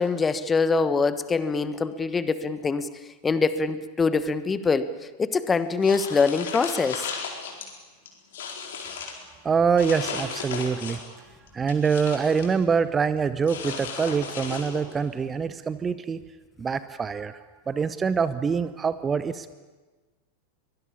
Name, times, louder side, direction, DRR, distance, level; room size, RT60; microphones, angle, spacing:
voice 1, 0.0-2.9 3.2-4.9 5.2-7.0, left 4 dB, 15° left, 13 dB, 1.2 m, -24 dB
sound 1, 5.8-7.7 8.1-9.2 9.8-11.1 11.5-12.5 13.5-15.0, left 6 dB, 60° left, 4.3 m, -35 dB
voice 2, 9.4-11.0 11.5-16.2 16.6-17.4 17.7-19.5, right 6 dB, 20° right, 14 dB, 0.8 m, -25 dB
23.5 x 19.5 x 8.6 m, 1.3 s
figure-of-eight pair, 90°, 0 cm